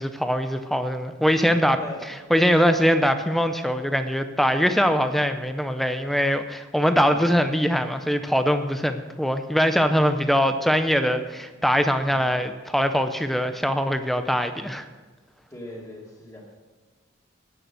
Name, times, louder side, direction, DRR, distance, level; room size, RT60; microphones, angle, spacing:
voice 1, 0.0-1.8 2.1-14.8, equal, ahead, 8 dB, 0.5 m, -22 dB
voice 2, 1.5-2.0 15.5-16.6, left 1 dB, 15° left, -3 dB, 2.4 m, -39 dB
11.0 x 9.5 x 6.2 m, 1.4 s
head